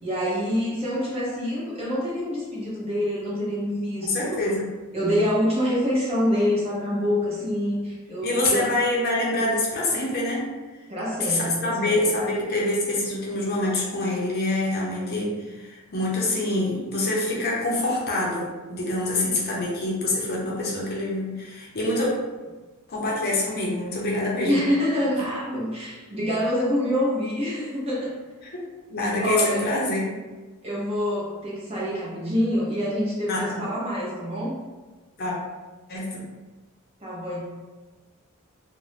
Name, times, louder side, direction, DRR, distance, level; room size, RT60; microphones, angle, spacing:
voice 1, 0.0-4.4 4.9-8.6 10.9-11.7 24.4-28.1 29.2-29.7 30.6-34.6 37.0-37.5, equal, 30° right, -6 dB, 0.7 m, -26 dB
voice 2, 4.0-4.6 8.2-10.4 11.2-22.1 22.9-24.7 28.5-28.6 28.9-30.1 33.3-33.6 35.2-35.3 35.9-36.3, left 2 dB, 45° left, -4 dB, 0.6 m, -25 dB
2.5 x 2.1 x 3.2 m, 1.3 s
head